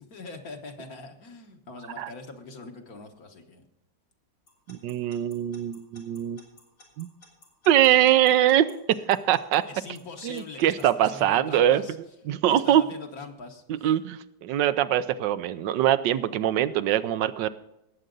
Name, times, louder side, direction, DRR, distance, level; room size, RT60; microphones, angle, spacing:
voice 1, 0.1-3.6 9.7-12.0 12.5-13.9, left 3 dB, 55° left, 4 dB, 1.8 m, -42 dB
Alarm / Clock, 4.5-10.8, left 3 dB, 85° left, 3.9 m, -53 dB
voice 2, 4.7-6.4 7.0-7.1 7.7-8.7 9.1-9.6 10.2-11.8 12.3-12.8 13.7-17.5, right 11 dB, 80° right, 13 dB, 1.3 m, -23 dB
18.5 x 7.9 x 3.9 m, 0.90 s
omnidirectional pair, 1.9 m